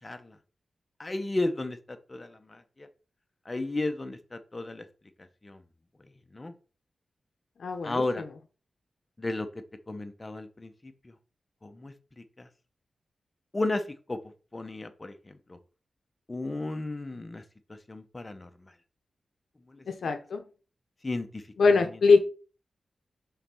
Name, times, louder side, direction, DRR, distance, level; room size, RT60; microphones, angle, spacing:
voice 1, 0.0-0.4 1.0-2.9 3.5-4.9 5.4-5.6 6.3-6.5 7.8-8.2 9.2-9.5 9.9-11.1 11.6-12.5 13.5-14.2 14.5-15.6 16.3-17.4 17.7-18.7 19.7-19.8 21.0-21.9, left 2 dB, 25° left, 8 dB, 0.8 m, -34 dB
voice 2, 7.6-8.3 19.9-20.4 21.6-22.2, left 4 dB, 75° left, 5 dB, 0.7 m, -23 dB
5.8 x 4.1 x 4.4 m, 0.36 s
wide cardioid pair, 100°, 0 cm